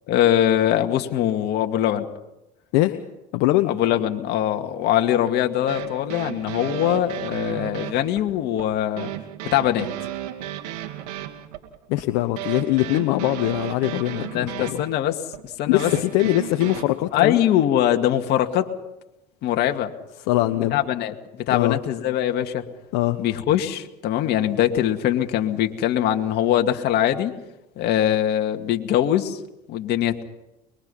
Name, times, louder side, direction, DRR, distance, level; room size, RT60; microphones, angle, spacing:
voice 1, 0.1-2.1 3.7-9.1 9.5-9.9 14.3-15.2 15.6-15.9 17.1-18.7 19.4-19.9 20.7-22.6 23.2-27.3 27.8-29.4 29.7-30.2, left 11 dB, 55° left, 5 dB, 2.2 m, -22 dB
voice 2, 3.3-3.7 11.9-14.8 15.7-17.4 20.2-20.8 21.5-21.8 22.9-23.2, left 16 dB, 75° left, 8 dB, 1.1 m, -22 dB
sound 1, 5.3-16.8, right 13 dB, 85° right, 2.3 m, -34 dB
23.5 x 22.5 x 5.7 m, 0.94 s
supercardioid pair, 100°, 20 cm